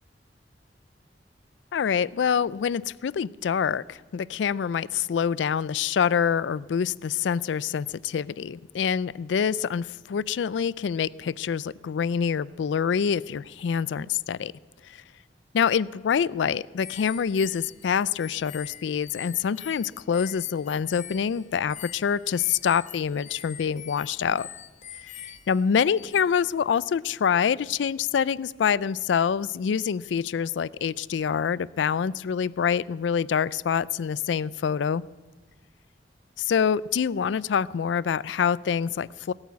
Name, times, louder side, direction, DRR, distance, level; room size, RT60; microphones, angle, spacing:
voice 1, 1.7-14.5 14.8-15.0 15.5-24.5 25.1-35.0 36.4-39.3, left 7 dB, 90° left, 21 dB, 0.4 m, -26 dB
sound 1, 16.8-26.2, left 10 dB, 40° left, 0.8 m, -44 dB
17.0 x 8.9 x 8.4 m, 1.3 s
head